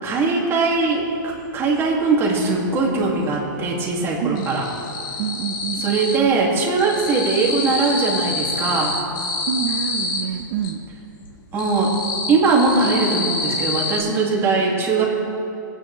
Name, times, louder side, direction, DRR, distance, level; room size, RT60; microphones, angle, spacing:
voice 1, 0.0-4.7 5.8-9.0 11.5-12.0 12.3-15.0, right 3 dB, 20° right, -2 dB, 2.2 m, -20 dB
sound 1, 0.8-0.9 1.2-2.4 2.7-3.4 3.7-6.3 6.6-10.7 11.2-14.0, left 3 dB, 80° left, 2.2 m, -27 dB
voice 2, 5.2-6.0 9.5-10.8, right 9 dB, 50° right, 2 dB, 0.8 m, -27 dB
21.5 x 8.9 x 3.2 m, 2.8 s
hypercardioid pair, 140°, 11 cm